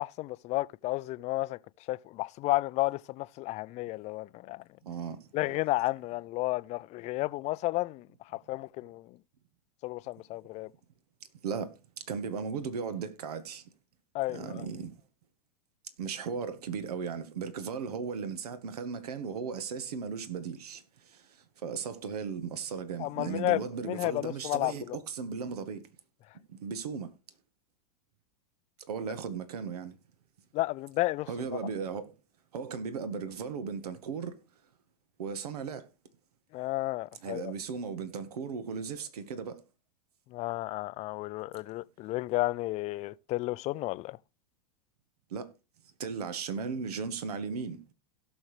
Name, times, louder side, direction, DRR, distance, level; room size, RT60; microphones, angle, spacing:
voice 1, 0.0-1.6 1.9-4.6 5.3-8.1 8.5-9.2 9.8-10.7 14.1-14.7 23.0-25.0 30.5-31.3 36.5-37.5 40.3-44.2, left 19 dB, 35° left, 0.4 m, -32 dB
voice 2, 4.8-5.3 11.4-13.7 14.3-14.9 16.0-25.9 26.5-27.1 28.9-30.0 31.3-32.2 32.5-34.4 35.2-35.9 37.2-39.6 45.3-45.5 46.0-47.8, right 6 dB, 80° right, 1.4 m, -36 dB
17.0 x 6.3 x 3.2 m
hypercardioid pair, 110°, 19 cm